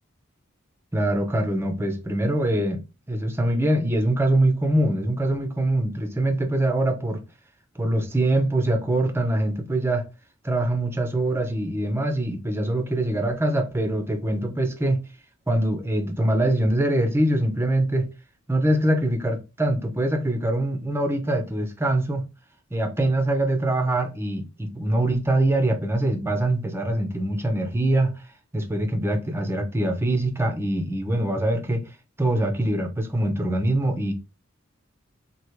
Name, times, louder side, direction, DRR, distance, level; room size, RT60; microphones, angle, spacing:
voice 1, 0.9-7.2 7.8-10.1 10.4-15.0 15.5-18.1 18.5-22.2 22.7-28.1 28.5-31.8 32.2-34.1, right 1 dB, 10° right, 0.7 m, -23 dB
4.5 x 2.9 x 3.1 m
head